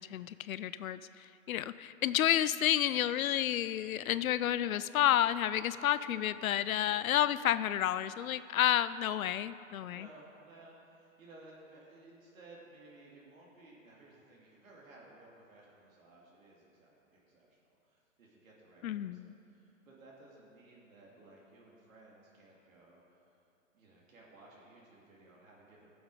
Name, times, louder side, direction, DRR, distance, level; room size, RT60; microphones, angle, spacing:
voice 1, 0.1-10.1 18.8-19.3, left 11 dB, 85° left, 15 dB, 0.6 m, -30 dB
voice 2, 9.9-23.0 23.7-25.9, right 2 dB, 80° right, -4 dB, 2.8 m, -57 dB
15.5 x 7.1 x 4.9 m, 2.7 s
hypercardioid pair, 165°, 40 cm